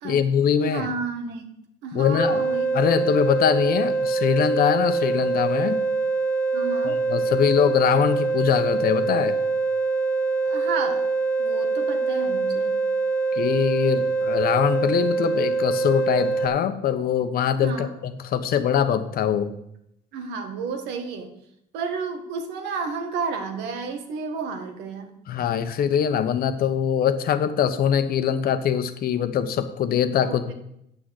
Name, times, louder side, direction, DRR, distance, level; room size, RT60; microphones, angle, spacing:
voice 1, 0.0-0.9 1.9-2.4 2.7-5.8 6.8-9.4 13.3-19.5 25.3-30.5, left 8 dB, 60° left, 10 dB, 1.0 m, -23 dB
voice 2, 0.6-1.5 1.8-2.7 3.0-3.1 6.5-7.0 10.5-11.1 11.4-12.8 17.6-17.9 20.1-21.3 21.7-25.1 30.2-30.5, right 5 dB, 90° right, 6 dB, 1.6 m, -31 dB
sound 1, 2.2-16.5, right 3 dB, 5° left, 1.8 m, -24 dB
8.8 x 6.5 x 7.9 m, 0.78 s
cardioid pair, 110°, 17 cm